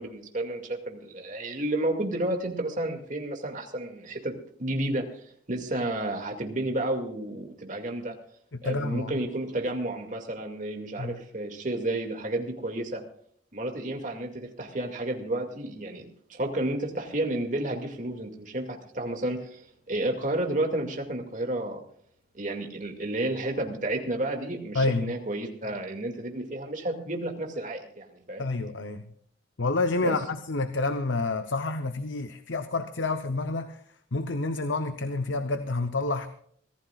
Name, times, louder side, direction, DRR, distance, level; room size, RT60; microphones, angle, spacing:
voice 1, 0.0-5.1 5.5-8.1 8.6-13.0 13.5-19.6 19.9-21.8 22.3-28.5 30.0-30.2, right 1 dB, 40° right, 3 dB, 2.3 m, -31 dB
voice 2, 8.6-9.2 11.0-11.2 24.7-25.2 28.4-29.0 29.6-33.8 34.1-36.3, left 3 dB, 75° left, 8 dB, 0.9 m, -28 dB
25.0 x 15.5 x 2.4 m, 0.63 s
head